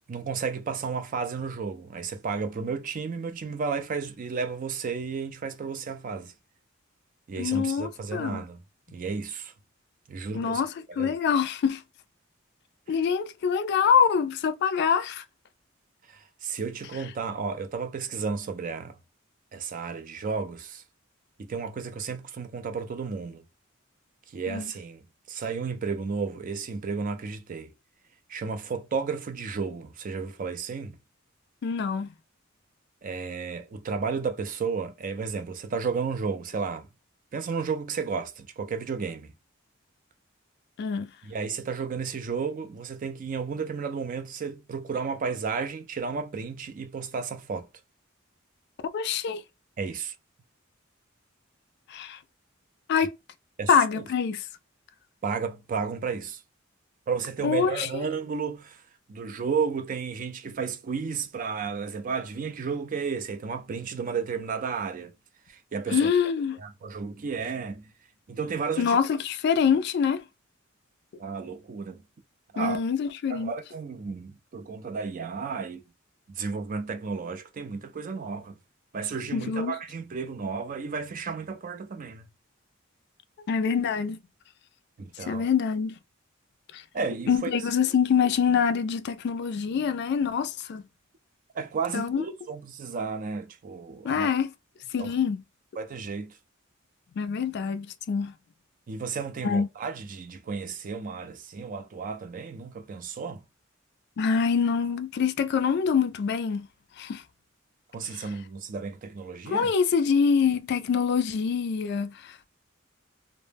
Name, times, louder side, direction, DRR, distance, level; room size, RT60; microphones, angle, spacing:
voice 1, 0.1-6.3 7.3-8.6 8.9-9.5 10.1-10.6 11.0-11.2 16.1-19.0 19.5-20.8 21.4-23.4 24.3-27.7 28.3-31.0 33.0-36.9 37.3-39.3 41.2-47.7 49.8-50.1 53.6-54.1 55.2-56.4 57.1-58.8 59.1-65.1 65.5-66.1 66.6-67.9 68.3-69.0 71.2-72.0 72.5-72.8 73.3-75.8 76.3-78.6 78.9-82.3 85.0-85.5 86.9-87.5 91.5-94.3 95.0-95.1 95.8-96.4 98.9-103.4 107.9-109.7, right 5 dB, 40° right, 0.4 m, -33 dB
voice 2, 7.4-8.4 10.3-11.8 12.9-15.2 24.5-24.6 31.6-32.1 40.8-41.1 48.9-49.4 51.9-52.2 52.9-53.1 53.7-54.4 57.4-58.0 65.9-66.6 68.8-70.2 72.6-73.5 79.3-79.7 83.5-84.2 85.3-85.9 86.7-86.8 87.3-90.8 91.9-92.2 94.0-94.5 94.9-95.4 97.2-98.3 99.4-99.7 104.2-106.7 107.0-107.2 109.5-112.1, left 6 dB, 55° left, 0.3 m, -25 dB
2.1 x 2.0 x 3.2 m
head